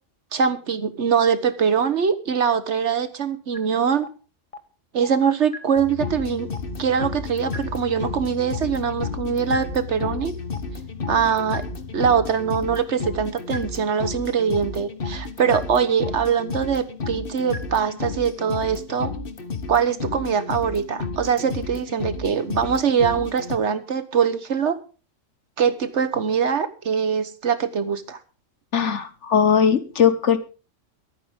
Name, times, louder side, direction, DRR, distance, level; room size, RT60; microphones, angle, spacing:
voice 1, 0.3-4.1 4.9-6.5 6.8-10.3 11.1-11.6 11.9-19.1 19.7-24.8 25.6-28.2, right 7 dB, 70° right, 12 dB, 1.5 m, -23 dB
sound 1, 3.5-3.6 4.0-4.1 4.5-4.6 5.0-5.1 5.5-5.6 6.0-6.1 6.5-6.6 7.0-7.1 7.5-7.6 8.0-8.1 8.5-8.6 9.0-9.1 9.5-9.6 10.0-10.1 10.5-10.6 11.0-11.1 11.5-11.6 12.0-12.1 12.5-12.6 13.0-13.1 13.5-13.6 14.0-14.1 14.5-14.6 15.0-15.1 15.5-15.6 16.0-16.1 16.5-16.6 17.0-17.1 17.5-17.6 18.0-18.1 18.5-18.6 19.0-19.1, left 2 dB, 30° left, 1.3 m, -35 dB
sound 2, 5.8-23.6, left 4 dB, 50° left, 1.4 m, -32 dB
voice 2, 28.7-30.4, left 7 dB, 70° left, 11 dB, 1.6 m, -19 dB
23.5 x 9.2 x 3.6 m, 0.35 s
omnidirectional pair, 1.3 m